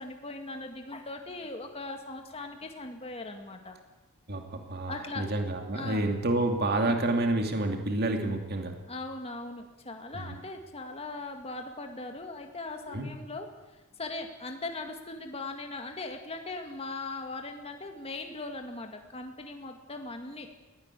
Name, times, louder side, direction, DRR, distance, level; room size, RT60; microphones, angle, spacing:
voice 1, 0.0-3.8 4.9-5.3 5.7-6.1 8.9-13.5 14.0-20.5, left 2 dB, 25° left, 4 dB, 2.1 m, -39 dB
voice 2, 4.3-8.7 10.1-10.3 12.9-13.1, right 2 dB, 45° right, 4 dB, 2.6 m, -29 dB
20.5 x 17.0 x 8.4 m, 1.1 s
head